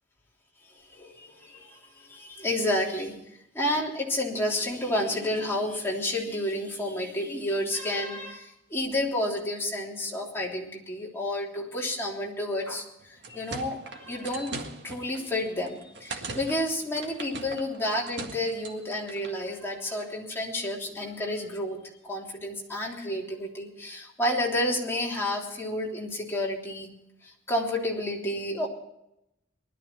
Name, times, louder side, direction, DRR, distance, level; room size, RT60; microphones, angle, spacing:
voice 1, 0.7-3.2 3.5-26.9 27.2-28.7, left 1 dB, 10° left, -3 dB, 3.2 m, -30 dB
sound 1, 13.0-19.4, right 3 dB, 60° right, 1.8 m, -41 dB
20.0 x 12.5 x 4.5 m, 0.83 s
head